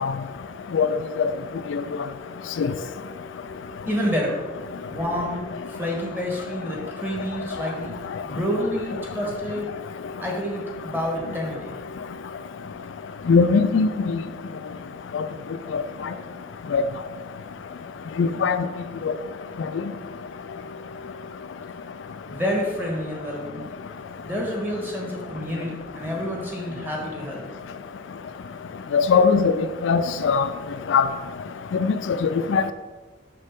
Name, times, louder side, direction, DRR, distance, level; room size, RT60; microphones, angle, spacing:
voice 1, 3.9-4.4 4.8-9.7 10.2-11.8 15.6-15.7 22.3-23.7 24.2-27.4, equal, 10° right, 1.5 m, -29 dB
voice 2, 13.3-14.2 15.1-15.2 15.7-15.8 16.7-16.8 18.2-18.6 28.9-29.5 29.8-30.5 30.9-31.1 31.8-31.9 32.2-32.6, left 5 dB, 70° left, 0.4 m, -19 dB
6.6 x 6.2 x 3.7 m
head